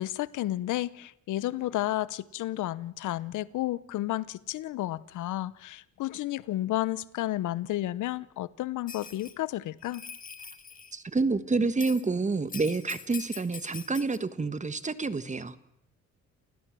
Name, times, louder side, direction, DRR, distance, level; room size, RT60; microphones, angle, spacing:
voice 1, 0.0-10.0, left 15 dB, 80° left, 0.8 m, -32 dB
Bell, 8.9-9.3 9.8-10.9 11.8-12.1 12.5-14.2, left 5 dB, 25° left, 2.0 m, -43 dB
voice 2, 10.9-15.6, right 3 dB, 25° right, 1.4 m, -28 dB
29.5 x 16.0 x 7.6 m
cardioid pair, 90°, 30 cm